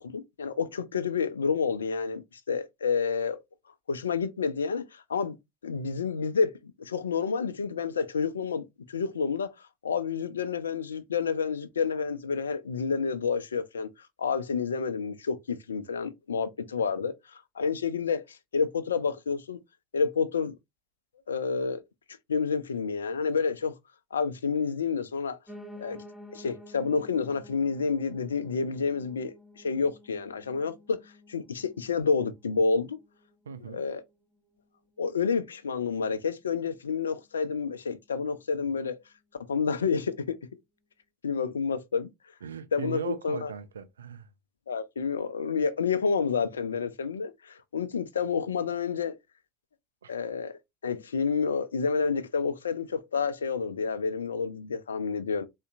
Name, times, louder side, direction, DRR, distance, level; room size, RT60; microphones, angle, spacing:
voice 1, 0.0-2.2 2.5-3.4 3.9-5.3 5.6-9.5 9.8-19.6 19.9-20.5 21.3-21.8 22.3-23.7 24.1-25.4 25.8-26.0 26.3-31.0 31.3-33.0 33.6-34.0 35.0-39.0 39.4-40.4 41.2-42.1 42.7-43.5 44.7-49.2 50.1-55.4, left 5 dB, 80° left, 0.4 m, -29 dB
Piano, 25.5-34.6 35.0-36.1 36.4-36.5 36.7-36.8 37.1-37.2 37.7-37.8, equal, 20° left, 0.7 m, -51 dB
voice 2, 33.5-33.8 42.4-44.3 50.0-50.1, right 7 dB, 80° right, 0.3 m, -38 dB
3.8 x 2.1 x 2.5 m
figure-of-eight pair, 75°, 0 cm